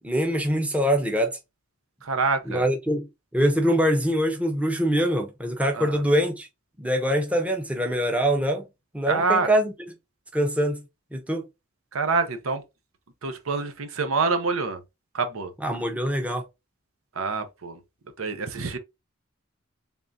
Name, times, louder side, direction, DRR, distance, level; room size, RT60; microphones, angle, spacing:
voice 1, 0.0-1.4 2.5-3.1 3.3-6.5 6.8-8.7 8.9-9.7 10.3-10.8 11.1-11.5 15.6-16.4, equal, 5° right, 0.6 m, -24 dB
voice 2, 2.0-2.6 5.7-6.0 9.0-9.5 11.9-12.6 13.2-14.8 15.1-15.5 17.2-17.8 18.2-18.8, right 4 dB, 80° right, 0.8 m, -26 dB
3.8 x 3.5 x 2.6 m
head